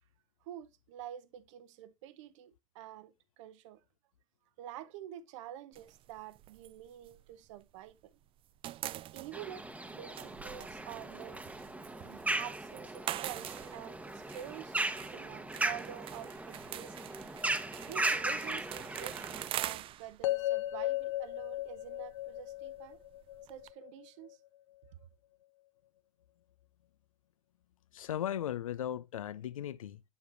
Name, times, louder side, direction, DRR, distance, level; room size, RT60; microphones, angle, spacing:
voice 1, 0.4-3.8 4.6-8.1 9.1-11.4 12.0-17.1 17.8-23.0 23.5-24.4, right 11 dB, 65° right, 0.9 m, -48 dB
sound 1, 5.7-8.0 8.3-23.7, right 13 dB, 30° right, 0.4 m, -45 dB
sound 2, 9.3-19.5, right 2 dB, 10° right, 1.0 m, -37 dB
sound 3, 20.2-24.3, left 16 dB, 65° left, 1.0 m, -36 dB
voice 2, 27.9-30.0, left 10 dB, 80° left, 0.5 m, -37 dB
8.0 x 7.1 x 2.5 m
hypercardioid pair, 85°, 17 cm